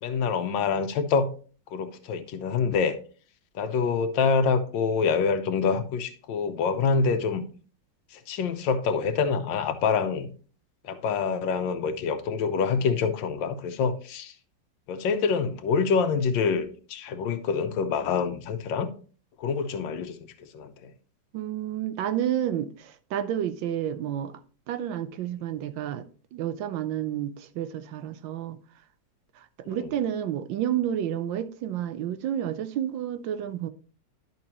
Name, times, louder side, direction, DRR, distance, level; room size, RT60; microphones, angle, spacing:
voice 1, 0.0-1.3 1.7-3.0 3.5-7.4 8.1-10.3 10.8-14.3 14.9-18.9 19.4-20.2 20.5-20.9 29.6-29.9, left 5 dB, 90° left, 1.5 m, -26 dB
voice 2, 21.3-24.4 24.7-26.1 26.3-28.6 29.7-33.7, right 10 dB, 85° right, 1.4 m, -30 dB
10.5 x 5.8 x 3.0 m
omnidirectional pair, 2.0 m